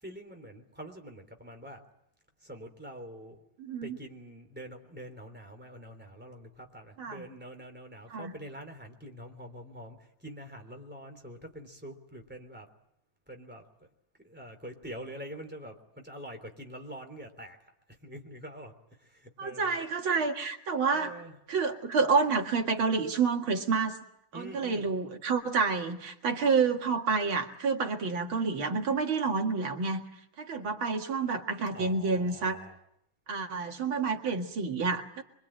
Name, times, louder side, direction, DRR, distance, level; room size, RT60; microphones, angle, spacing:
voice 1, 0.0-1.8 2.4-3.4 3.8-12.7 13.3-13.9 14.2-19.8 20.9-21.4 24.3-24.9 31.7-32.8, equal, 5° right, 4 dB, 3.5 m, -45 dB
voice 2, 3.6-4.0 7.0-7.3 8.1-8.3 19.4-21.1 21.5-24.0 24.3-30.0 30.4-32.6 33.3-35.2, right 4 dB, 85° right, 3 dB, 2.8 m, -29 dB
25.5 x 24.0 x 8.9 m, 0.77 s
omnidirectional pair, 2.2 m